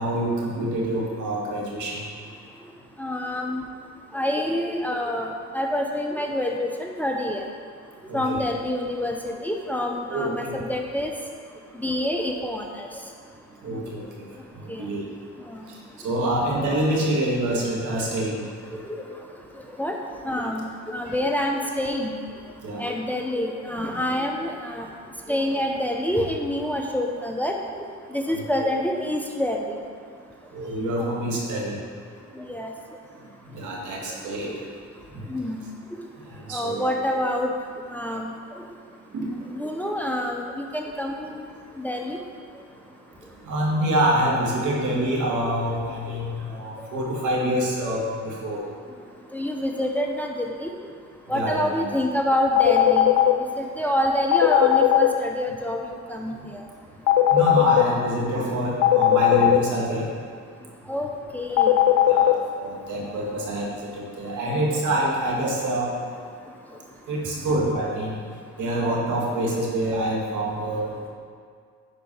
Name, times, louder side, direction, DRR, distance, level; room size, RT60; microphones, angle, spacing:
voice 1, 0.0-2.0 8.1-8.4 10.1-10.5 13.6-14.0 14.8-15.0 16.0-18.4 22.6-22.8 28.3-28.4 30.5-31.7 33.5-34.5 36.5-36.9 39.1-39.3 43.5-48.6 51.3-51.9 57.3-60.0 62.1-63.7 64.0-65.9 67.1-68.2 68.6-71.1, right 1 dB, 75° right, -3 dB, 2.1 m, -26 dB
voice 2, 3.0-3.6 4.1-7.5 8.1-11.1 11.8-12.9 14.7-14.9 15.5-15.7 16.2-16.3 18.7-19.1 19.6-20.0 20.2-22.1 22.8-24.9 25.3-27.6 28.1-29.7 31.0-31.1 32.4-32.7 34.5-34.6 35.3-35.6 36.5-37.5 37.9-38.7 39.5-41.5 41.8-42.2 46.8-46.9 49.3-50.7 51.3-53.3 53.6-55.8 56.1-56.6 60.9-61.1 61.3-61.8, left 1 dB, 5° left, 1 dB, 0.9 m, -27 dB
sound 1, 52.6-53.3 54.3-55.1 57.1-57.8 58.8-59.6 61.6-62.3, left 13 dB, 80° left, 0.7 m, -16 dB
10.0 x 4.6 x 5.6 m, 2.1 s
cardioid pair, 90°, 30 cm